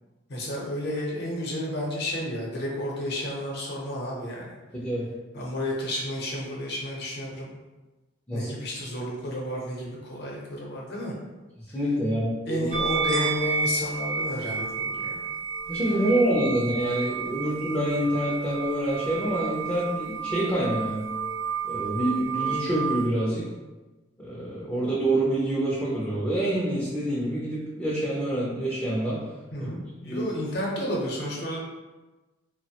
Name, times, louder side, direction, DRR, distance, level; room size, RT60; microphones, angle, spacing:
voice 1, 0.3-4.5 5.3-7.5 8.3-11.1 12.5-15.3 29.5-31.6, left 1 dB, 60° left, -3 dB, 0.7 m, -31 dB
voice 2, 4.7-5.1 8.3-8.5 11.7-12.7 15.7-21.1 21.7-23.5 24.2-29.2 29.6-29.7 30.0-30.2, right 1 dB, 10° left, -7 dB, 0.5 m, -26 dB
sound 1, 12.7-23.1, right 5 dB, 65° right, 0.5 m, -31 dB
3.0 x 2.1 x 2.8 m, 1.2 s
head